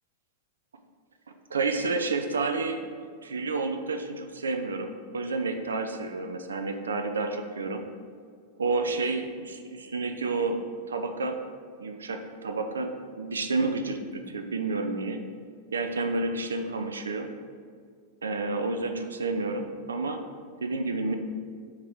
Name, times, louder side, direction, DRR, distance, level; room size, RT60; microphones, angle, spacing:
voice 1, 1.5-7.8 8.6-10.6 10.9-11.4 11.8-15.2 15.7-17.3 18.2-20.2 20.6-21.1, right 3 dB, 70° right, 6 dB, 0.4 m, -30 dB
7.3 x 3.0 x 4.7 m, 2.1 s
figure-of-eight pair, 90°, 0 cm